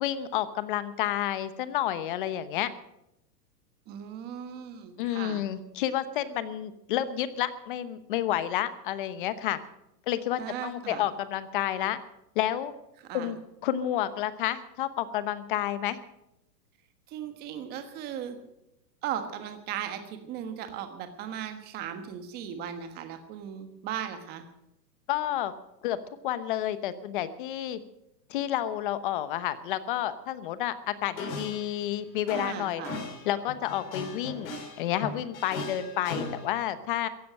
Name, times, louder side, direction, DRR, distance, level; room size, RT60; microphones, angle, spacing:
voice 1, 0.0-2.7 5.0-9.6 10.1-12.0 12.3-12.7 13.1-16.0 25.1-25.5 25.8-26.0 26.2-27.8 28.3-32.8 33.2-34.5 34.8-37.1, left 12 dB, 30° left, 14 dB, 0.9 m, -30 dB
voice 2, 3.9-5.4 10.4-11.1 13.0-13.3 17.1-18.4 19.0-24.4 32.3-33.0, right 9 dB, 20° right, 8 dB, 1.4 m, -37 dB
sound 1, 31.2-31.9 32.3-36.5, left 3 dB, 55° left, 6.4 m, -38 dB
15.5 x 11.0 x 7.6 m, 0.85 s
hypercardioid pair, 165°, 50 cm